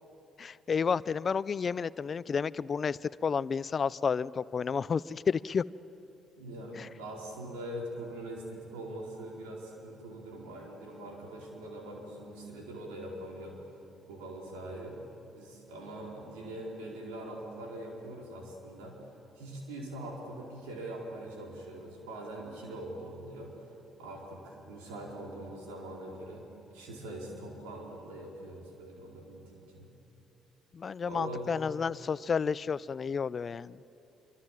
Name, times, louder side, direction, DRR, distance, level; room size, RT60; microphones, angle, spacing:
voice 1, 0.4-5.6 6.8-6.9 30.7-33.8, left 6 dB, 45° left, 19 dB, 0.5 m, -31 dB
voice 2, 6.4-13.7 14.1-15.0 15.3-19.0 19.3-26.4 26.7-29.9 31.0-31.5, right 1 dB, 90° right, -1 dB, 4.6 m, -43 dB
26.0 x 24.5 x 7.5 m, 2.8 s
supercardioid pair, 60°, 0 cm